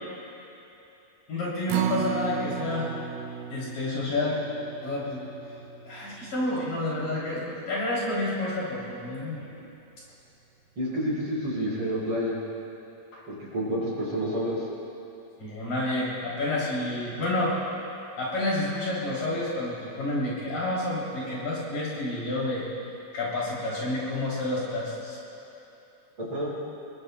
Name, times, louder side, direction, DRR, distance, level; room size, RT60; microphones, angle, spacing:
voice 1, 1.3-2.9 3.5-4.4 4.8-5.2 5.8-9.5 15.4-17.6 18.2-22.7 23.1-25.2, left 2 dB, 60° left, -6 dB, 4.6 m, -29 dB
Acoustic guitar, 1.7-8.0 8.4-8.5 8.9-9.0, right 9 dB, 90° right, 2.7 m, -35 dB
voice 2, 10.8-12.4 13.3-14.6 26.2-26.5, equal, 35° right, -7 dB, 5.3 m, -29 dB
27.5 x 22.5 x 2.2 m, 2.9 s
omnidirectional pair, 4.5 m